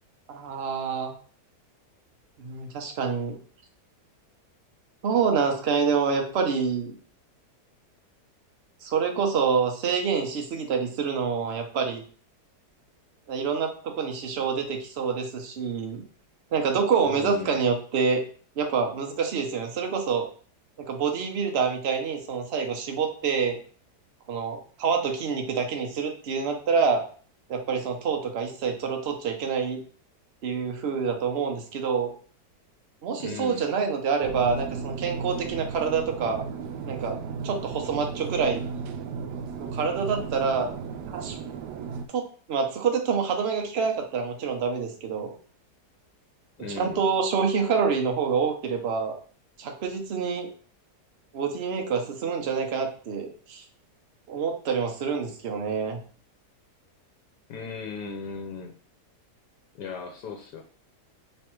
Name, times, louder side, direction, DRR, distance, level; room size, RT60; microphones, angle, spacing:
voice 1, 0.3-1.1 2.4-3.4 5.0-6.9 8.8-12.0 13.3-16.0 16.5-18.2 18.6-20.3 20.8-23.6 24.3-27.0 27.5-29.8 30.4-32.1 33.0-36.5 36.8-37.2 37.4-38.6 39.6-40.7 41.1-41.3 42.1-45.3 46.8-49.2 49.6-50.5 51.3-53.6 54.3-56.0, right 5 dB, 50° right, 3 dB, 0.9 m, -27 dB
voice 2, 17.0-17.6 33.2-33.7 46.6-47.0 57.5-58.7 59.7-60.6, left 5 dB, 85° left, 2 dB, 1.3 m, -37 dB
sound 1, 34.2-42.1, right 5 dB, 80° right, 1.2 m, -35 dB
3.4 x 3.2 x 4.4 m, 0.42 s
omnidirectional pair, 1.8 m